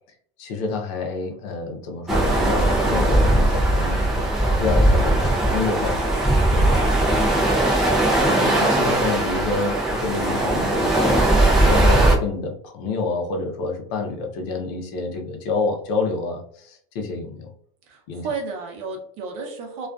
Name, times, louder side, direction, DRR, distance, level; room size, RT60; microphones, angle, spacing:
voice 1, 0.4-4.1 4.6-6.1 8.2-11.2 11.5-17.5 18.1-18.3, left 3 dB, 60° left, 3 dB, 0.6 m, -28 dB
sound 1, 2.1-12.2, right 1 dB, ahead, 0.4 m, -19 dB
voice 2, 6.5-6.9 17.9-19.9, right 4 dB, 45° right, 1 dB, 0.7 m, -32 dB
2.4 x 2.3 x 2.3 m, 0.62 s
cardioid pair, 170°, 16 cm